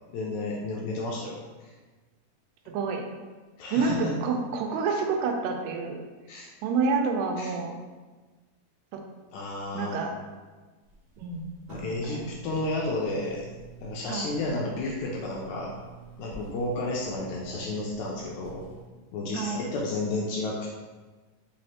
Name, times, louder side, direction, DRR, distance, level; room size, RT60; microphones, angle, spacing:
voice 1, 0.1-1.7 3.6-4.1 6.3-6.5 7.4-7.5 9.3-10.0 11.7-13.5 13.8-15.7 16.2-18.6 19.1-20.7, left 2 dB, 80° left, -2 dB, 1.8 m, -32 dB
voice 2, 3.7-6.0 6.6-7.8 8.9-9.0 9.7-10.1 11.2-11.5 12.0-12.2 14.1-14.3 19.3-19.7, right 4 dB, 90° right, 3 dB, 2.2 m, -28 dB
sound 1, 10.8-18.8, right 3 dB, 55° right, 1.2 m, -47 dB
5.0 x 3.1 x 2.8 m, 1.3 s
omnidirectional pair, 3.8 m